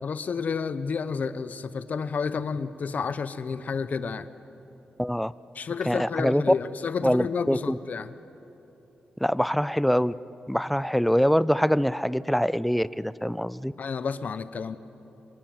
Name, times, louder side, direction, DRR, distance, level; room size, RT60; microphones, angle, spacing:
voice 1, 0.0-4.3 5.5-8.1 13.8-14.8, left 5 dB, 55° left, 13 dB, 1.0 m, -30 dB
voice 2, 5.0-5.3 5.9-6.5 7.0-7.8 9.2-10.1 10.5-13.7, equal, ahead, 18 dB, 0.5 m, -24 dB
26.0 x 23.0 x 9.0 m, 3.0 s
cardioid pair, 100°, 3 cm